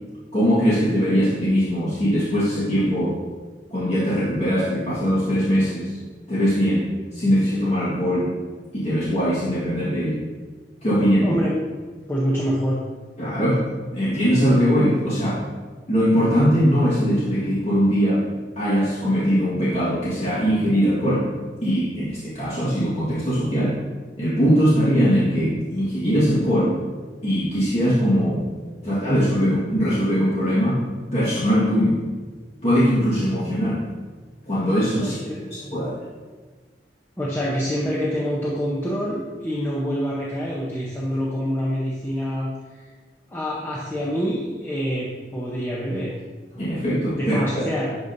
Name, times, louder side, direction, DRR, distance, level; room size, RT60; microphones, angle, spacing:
voice 1, 0.3-3.2 3.7-5.9 6.3-8.3 8.7-10.2 10.8-11.4 13.2-13.6 13.9-15.4 15.9-18.2 18.5-21.3 21.6-23.8 24.2-26.8 27.2-28.4 28.8-30.8 31.1-32.0 32.6-33.8 34.5-35.2 35.5-35.9 46.6-47.5, equal, 40° left, -9 dB, 1.7 m, -21 dB
voice 2, 11.2-11.5 12.1-12.8 35.0-35.9 37.2-42.8 43.3-46.1 47.2-48.0, equal, 15° left, -5 dB, 0.9 m, -26 dB
11.5 x 5.2 x 2.7 m, 1.4 s
head